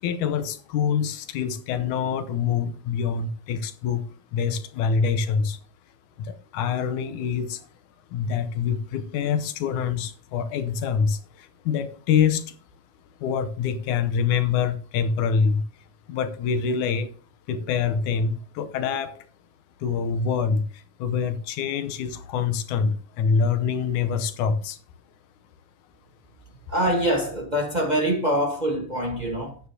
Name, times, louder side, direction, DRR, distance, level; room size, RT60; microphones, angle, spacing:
voice 1, 0.0-4.0 4.3-5.6 6.2-7.7 8.1-12.6 13.2-15.6 16.1-17.1 17.5-19.2 19.8-24.8, left 6 dB, 80° left, 2.4 m, -25 dB
voice 2, 26.7-29.6, equal, 85° right, 0.4 m, -24 dB
13.0 x 9.1 x 2.8 m
omnidirectional pair, 3.5 m